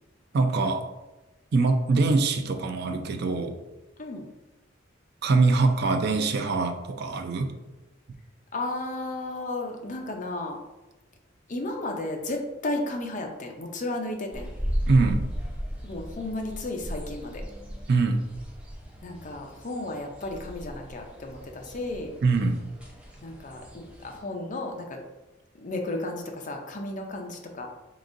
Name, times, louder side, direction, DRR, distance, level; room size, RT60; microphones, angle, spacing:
voice 1, 0.3-0.9 1.5-3.6 5.2-7.5 14.9-15.3 17.9-18.3 22.2-22.6, right 3 dB, 55° right, 6 dB, 0.4 m, -23 dB
voice 2, 8.5-10.6 11.5-14.5 15.8-17.4 19.0-22.2 23.2-25.0 25.5-27.7, left 2 dB, 40° left, 2 dB, 0.5 m, -33 dB
sound 1, 14.3-24.2, equal, 5° right, 0.5 m, -36 dB
3.8 x 3.7 x 2.5 m, 1.1 s
head